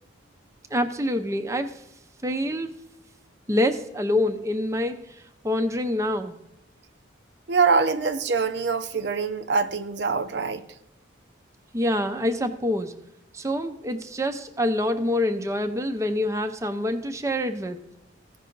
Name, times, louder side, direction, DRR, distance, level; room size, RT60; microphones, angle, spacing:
voice 1, 0.7-1.8 2.2-2.7 3.5-5.0 5.4-6.4 11.7-13.0 13.3-17.8, left 1 dB, 15° right, 0.6 m, -26 dB
voice 2, 7.5-10.6, right 4 dB, 60° right, 0.6 m, -24 dB
15.5 x 5.5 x 3.9 m
head